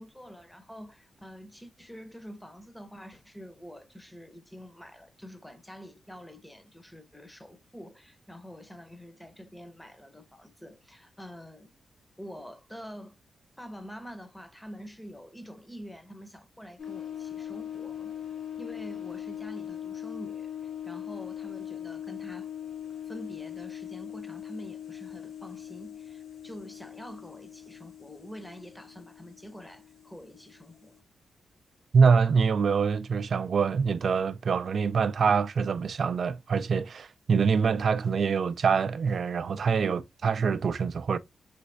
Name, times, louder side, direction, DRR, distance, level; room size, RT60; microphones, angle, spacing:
voice 1, 0.0-11.7 12.2-13.2 13.6-18.2 18.6-22.5 23.1-31.0, equal, 5° left, 0.7 m, -46 dB
sound 1, 16.8-31.0, left 10 dB, 80° left, 1.3 m, -41 dB
voice 2, 31.9-41.2, right 5 dB, 60° right, 0.3 m, -25 dB
3.2 x 3.1 x 2.6 m
cardioid pair, 75°, 0 cm